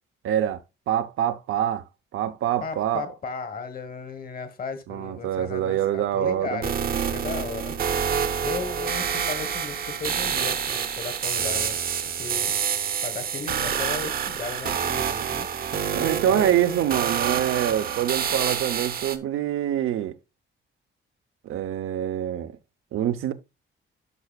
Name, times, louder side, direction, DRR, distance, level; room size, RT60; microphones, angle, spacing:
voice 1, 0.2-0.6 0.9-1.8 2.1-3.1 4.9-6.6 15.9-20.1 21.4-22.6 22.9-23.3, right 11 dB, 90° right, 0.7 m, -25 dB
voice 2, 2.6-7.8 8.4-11.8 12.2-12.5 13.0-15.5 16.0-16.5, left 5 dB, 45° left, 1.2 m, -35 dB
sound 1, 6.6-19.2, right 7 dB, 45° right, 0.7 m, -27 dB
11.0 x 5.8 x 2.3 m
wide cardioid pair, 160°, 21 cm